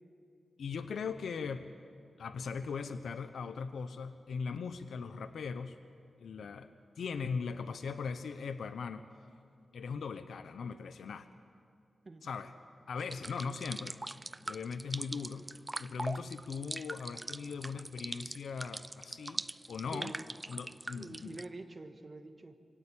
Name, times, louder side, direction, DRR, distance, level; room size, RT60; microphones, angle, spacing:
voice 1, 0.6-1.7 2.2-5.8 6.2-6.7 7.0-9.1 9.7-11.3 12.2-12.5 12.9-14.0 14.5-15.4 15.8-20.2 20.5-21.4, left 5 dB, 80° left, 10 dB, 0.8 m, -39 dB
sound 1, 13.0-21.5, right 2 dB, 25° right, 0.5 m, -42 dB
voice 2, 19.9-20.2 21.0-22.6, right 2 dB, 45° right, 6 dB, 2.0 m, -46 dB
24.0 x 17.5 x 8.5 m, 2.3 s
supercardioid pair, 40°, 0 cm